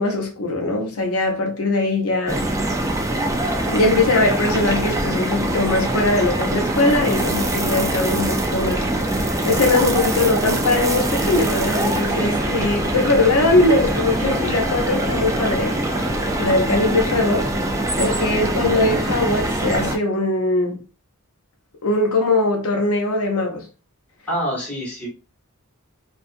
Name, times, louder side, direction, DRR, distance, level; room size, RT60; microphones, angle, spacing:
voice 1, 0.0-2.4 3.6-8.9 9.4-15.7 16.4-17.5 18.0-20.8 21.8-23.7, left 2 dB, 75° left, 0.6 m, -20 dB
sound 1, 2.3-20.0, right 1 dB, 15° right, 0.3 m, -23 dB
sound 2, 10.7-19.8, right 2 dB, 80° right, 0.9 m, -36 dB
voice 2, 24.3-25.1, equal, 5° left, 1.1 m, -26 dB
2.6 x 2.3 x 2.4 m
head